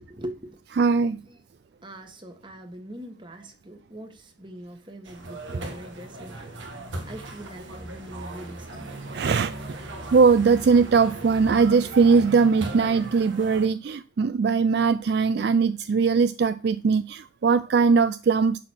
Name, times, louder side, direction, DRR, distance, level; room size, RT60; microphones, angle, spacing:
voice 1, 0.0-0.6 1.2-1.4 1.8-6.5 7.0-9.0, right 1 dB, 25° right, 1.5 m, -41 dB
voice 2, 0.8-1.2 9.1-9.5 10.1-18.6, right 5 dB, 55° right, 0.3 m, -20 dB
sound 1, 5.0-13.7, right 1 dB, 75° right, 1.6 m, -38 dB
11.0 x 4.1 x 6.4 m
head